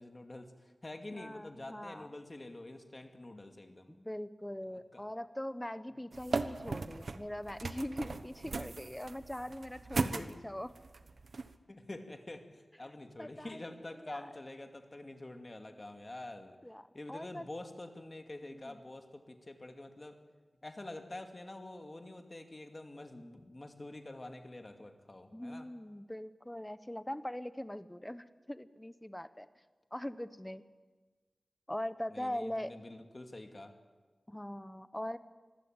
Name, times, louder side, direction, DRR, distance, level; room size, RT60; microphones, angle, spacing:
voice 1, 0.0-3.9 4.9-5.0 10.0-10.4 11.7-16.6 16.9-20.2 20.6-25.7 32.1-33.7, left 2 dB, 35° left, 5 dB, 2.4 m, -47 dB
voice 2, 1.2-2.1 3.9-10.7 13.2-14.4 16.6-17.5 18.5-18.8 25.3-29.5 29.9-30.6 31.7-32.7 34.3-35.2, left 1 dB, 10° left, 13 dB, 1.0 m, -42 dB
sound 1, 6.1-11.6, right 3 dB, 75° right, 1.1 m, -38 dB
24.5 x 15.5 x 8.8 m, 1.4 s
wide cardioid pair, 80°, 0 cm